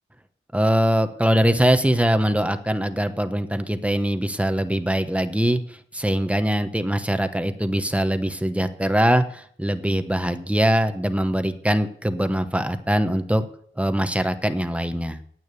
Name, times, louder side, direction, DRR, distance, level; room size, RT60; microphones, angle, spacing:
voice 1, 0.5-13.5 13.8-15.2, equal, 5° right, 9 dB, 1.0 m, -22 dB
9.6 x 8.8 x 8.5 m, 0.63 s
wide cardioid pair, 95°, 21 cm